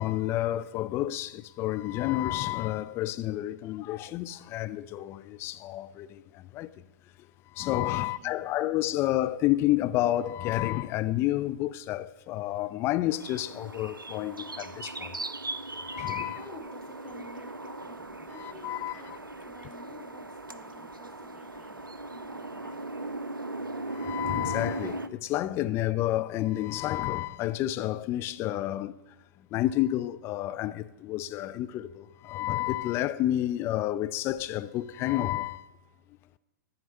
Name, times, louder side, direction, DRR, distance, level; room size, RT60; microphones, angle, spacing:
voice 1, 0.0-6.1 6.5-6.7 7.6-15.1 15.9-16.4 18.4-19.0 23.9-28.9 29.5-35.6, left 14 dB, 20° left, 0.3 m, -30 dB
voice 2, 7.9-8.7 10.8-10.9 16.2-19.1 19.4-21.8 22.1-23.2 25.6-25.7, left 1 dB, 5° left, 2.3 m, -51 dB
sound 1, 13.1-25.1, right 2 dB, 90° right, 0.4 m, -38 dB
11.0 x 4.4 x 6.5 m
figure-of-eight pair, 110°, 11 cm